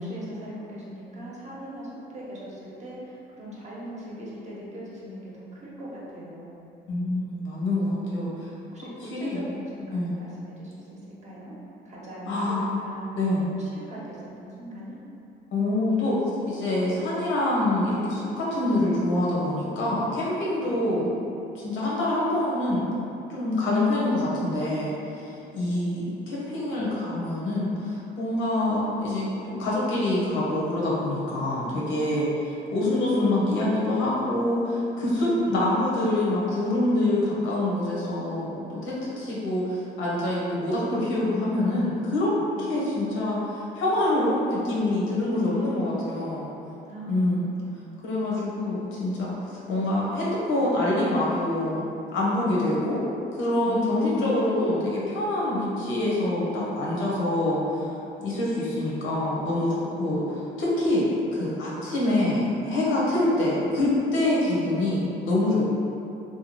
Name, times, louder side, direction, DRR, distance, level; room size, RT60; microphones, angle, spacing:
voice 1, 0.0-6.6 7.8-8.3 8.7-11.5 11.8-15.0 20.6-20.8 25.5-26.0 42.5-42.9 46.9-47.5 53.6-54.4 64.3-64.8, equal, 35° right, -6 dB, 0.8 m, -40 dB
voice 2, 6.9-8.3 9.1-9.4 9.9-10.1 12.3-12.6 13.1-13.5 15.5-16.2 16.5-21.1 21.5-23.0 23.3-26.0 26.3-42.3 42.6-46.5 47.1-47.5 48.0-49.3 49.7-51.8 52.1-53.0 53.3-65.6, left 1 dB, 85° left, -5 dB, 0.7 m, -25 dB
2.7 x 2.2 x 2.9 m, 2.8 s
cardioid pair, 90°, 20 cm